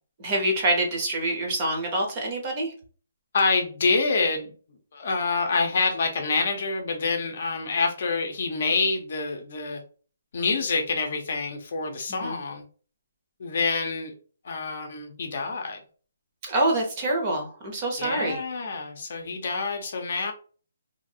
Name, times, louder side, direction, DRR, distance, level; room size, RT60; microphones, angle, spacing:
voice 1, 0.2-2.7 12.1-12.4 16.5-18.4, right 1 dB, 20° right, 1 dB, 0.7 m, -26 dB
voice 2, 3.3-4.5 4.9-9.8 10.3-12.6 13.4-14.1 14.4-15.8 18.0-20.3, left 4 dB, 45° left, 4 dB, 0.6 m, -27 dB
2.8 x 2.4 x 2.7 m, 0.39 s
hypercardioid pair, 175°, 0 cm